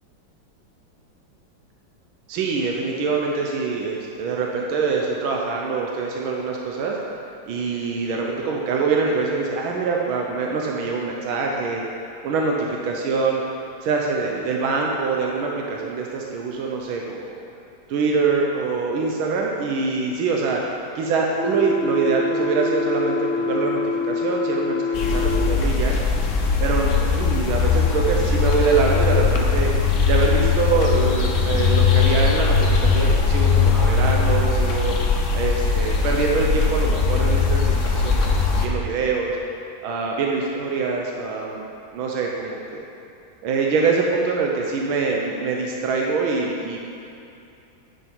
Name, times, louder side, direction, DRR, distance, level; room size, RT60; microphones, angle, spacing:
voice 1, 2.3-7.0 7.5-11.8 12.2-13.4 13.8-17.4 17.9-20.6 20.9-26.0 26.6-29.7 30.1-34.9 35.3-38.3 38.5-39.3 39.8-41.6 41.9-42.8 43.4-46.8, right 4 dB, 90° right, -1 dB, 1.6 m, -24 dB
sound 1, 21.4-25.6, left 4 dB, 80° left, 1.4 m, -25 dB
sound 2, 24.9-38.7, left 5 dB, 60° left, 0.8 m, -20 dB
10.0 x 5.7 x 4.4 m, 2.6 s
omnidirectional pair, 2.2 m